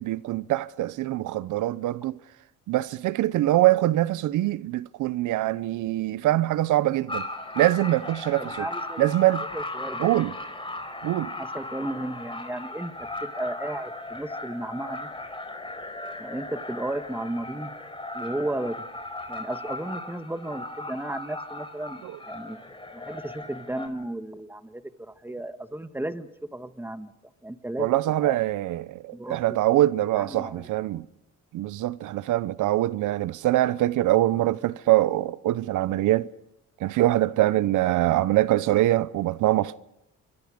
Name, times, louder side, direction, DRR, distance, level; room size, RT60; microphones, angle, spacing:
voice 1, 0.0-2.2 2.7-7.3 7.6-8.4 9.0-9.4 10.0-10.3 11.0-11.3 22.0-22.1 27.8-31.0 31.5-36.3 36.8-39.8, right 15 dB, 80° right, 0.7 m, -23 dB
sound 1, 7.1-23.9, left 2 dB, 15° left, 4.2 m, -37 dB
voice 2, 8.4-9.1 9.5-10.1 11.4-12.9 13.2-15.1 16.2-17.7 18.1-18.8 19.3-22.6 22.9-27.1 27.4-28.4 29.1-29.6 30.1-30.7 37.8-38.0, right 1 dB, 5° right, 1.5 m, -34 dB
26.5 x 24.0 x 5.1 m
cardioid pair, 90°, 30 cm